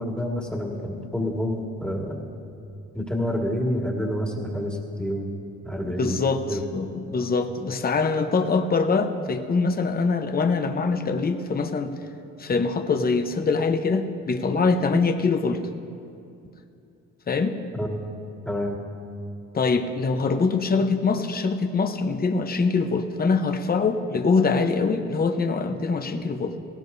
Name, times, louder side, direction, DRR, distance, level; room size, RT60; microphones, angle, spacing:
voice 1, 0.0-2.2 2.9-5.3 5.6-6.2 6.5-6.6 17.8-18.0 18.4-18.8, equal, 5° left, -1 dB, 2.0 m, -28 dB
voice 2, 6.0-11.9 12.4-15.6 17.3-17.6 19.5-26.6, left 4 dB, 30° left, 7 dB, 0.9 m, -23 dB
19.0 x 16.5 x 2.7 m, 2.6 s
cardioid pair, 90°, 30 cm